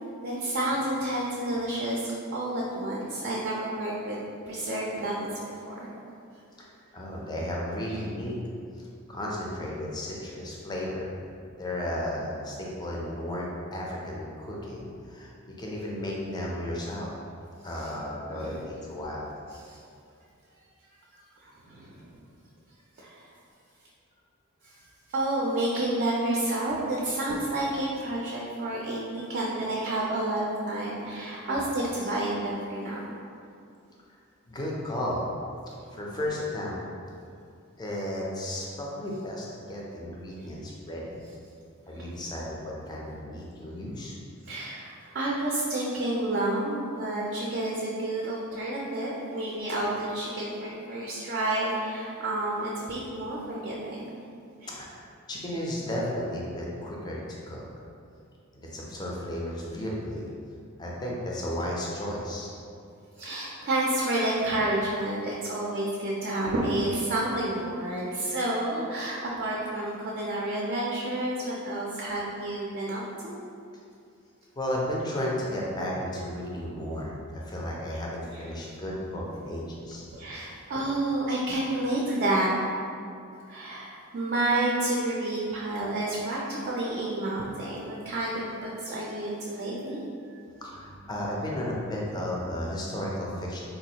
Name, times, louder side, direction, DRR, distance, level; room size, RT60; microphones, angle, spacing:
voice 1, 0.2-4.2 4.5-5.9 17.8-17.9 18.3-18.7 19.6-19.8 21.4-22.1 23.0-23.3 25.1-33.0 35.9-36.0 40.4-40.5 41.9-42.1 44.4-54.1 54.6-54.7 63.2-73.4 80.1-82.5 83.5-90.0 90.3-90.4, right 1 dB, 45° right, -4 dB, 0.4 m, -30 dB
voice 2, 6.9-8.4 8.8-11.1 11.6-17.1 17.6-19.3 34.1-34.2 34.5-35.2 35.9-36.8 37.8-41.2 41.9-44.2 54.7-57.6 58.5-60.3 60.8-62.5 74.6-80.0 90.6-93.6, left 1 dB, 20° left, -3 dB, 0.4 m, -34 dB
4.1 x 2.3 x 2.8 m, 2.5 s
head